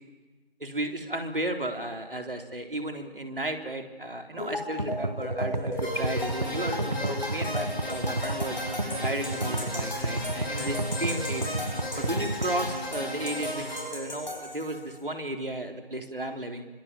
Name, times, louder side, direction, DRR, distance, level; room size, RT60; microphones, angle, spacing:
voice 1, 0.6-8.6 9.0-11.4 12.0-13.7 13.9-16.6, right 1 dB, 65° right, 5 dB, 3.9 m, -34 dB
sound 1, 4.4-15.0, left 1 dB, 45° left, 6.0 m, -37 dB
sound 2, 4.8-12.7, right 2 dB, 45° right, 1.4 m, -31 dB
sound 3, 5.8-13.8, equal, ahead, 2.8 m, -36 dB
25.5 x 25.5 x 7.5 m, 1.2 s
figure-of-eight pair, 175°, 30 cm